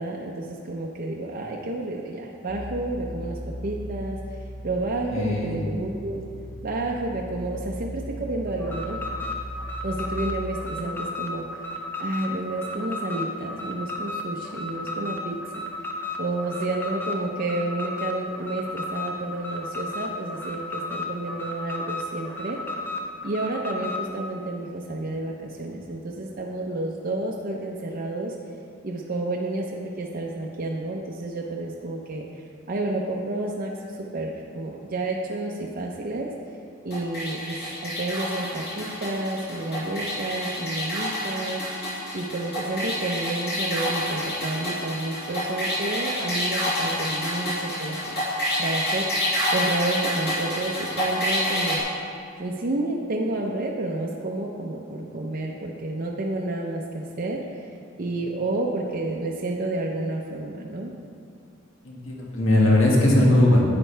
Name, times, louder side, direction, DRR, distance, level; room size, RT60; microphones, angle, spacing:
voice 1, 0.0-4.2 4.6-6.2 6.6-9.0 9.8-11.5 12.0-15.4 16.2-22.6 23.2-28.3 28.8-32.2 32.7-36.3 36.8-41.6 42.1-48.0 48.6-49.2 49.5-51.8 52.4-57.4 58.0-60.9, right 2 dB, 45° right, -1 dB, 0.7 m, -30 dB
sound 1, 2.5-10.2, equal, 30° left, 1.6 m, -38 dB
voice 2, 5.1-5.6 61.9-63.6, left 1 dB, 75° left, -3 dB, 1.8 m, -19 dB
Alarm, 8.6-24.1, left 2 dB, 10° left, 0.8 m, -33 dB
sound 2, 36.9-51.8, left 1 dB, 50° left, 2.2 m, -28 dB
11.0 x 9.0 x 3.4 m, 2.4 s
head